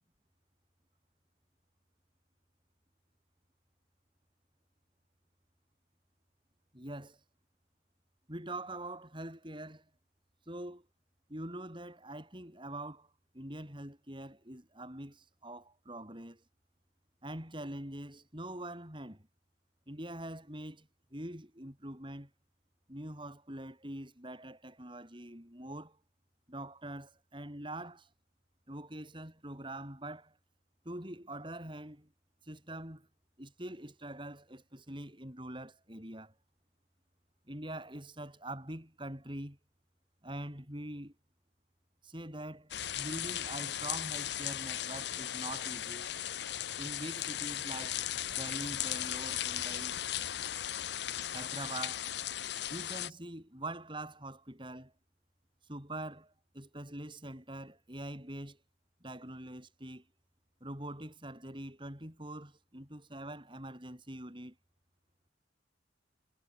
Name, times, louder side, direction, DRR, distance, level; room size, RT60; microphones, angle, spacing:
voice 1, 6.7-7.2 8.3-9.9 10.5-10.9 11.3-13.1 13.3-16.4 17.2-19.3 19.9-22.3 22.9-26.0 26.5-28.1 28.7-30.4 30.8-32.1 32.4-33.1 33.4-36.3 37.5-39.6 40.2-41.1 42.0-46.1 46.8-48.0 48.3-50.0 51.3-52.1 52.7-54.9 55.7-58.6 59.0-60.0 60.6-64.6, right 1 dB, 25° right, 7.5 m, -44 dB
sound 1, 42.7-53.1, left 11 dB, 65° left, 0.7 m, -37 dB
head